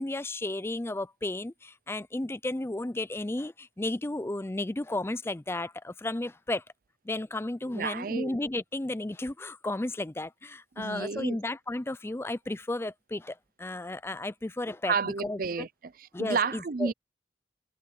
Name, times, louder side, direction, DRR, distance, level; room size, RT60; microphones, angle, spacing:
voice 1, 0.0-6.6 7.1-15.7 16.1-16.9, left 2 dB, 15° left, 0.4 m, -33 dB
voice 2, 7.7-8.4 10.8-11.4 14.8-16.9, right 5 dB, 50° right, 0.5 m, -31 dB
head